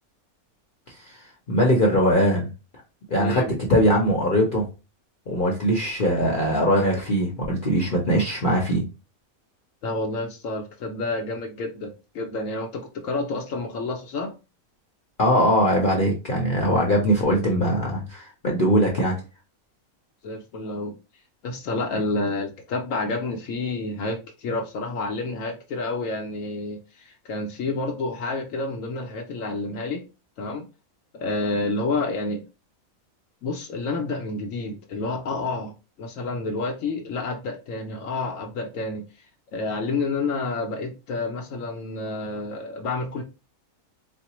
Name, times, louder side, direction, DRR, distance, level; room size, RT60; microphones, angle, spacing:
voice 1, 0.9-2.5 3.1-3.4 3.7-4.7 5.3-8.8 15.2-19.2, equal, 45° left, 0.8 m, -21 dB
voice 2, 3.1-3.6 9.8-14.3 20.2-20.9 21.4-30.0 30.4-30.6 31.1-32.4 33.4-35.7 36.0-39.0 39.5-43.2, left 3 dB, 70° left, 0.9 m, -29 dB
4.3 x 2.1 x 2.9 m
omnidirectional pair, 1.5 m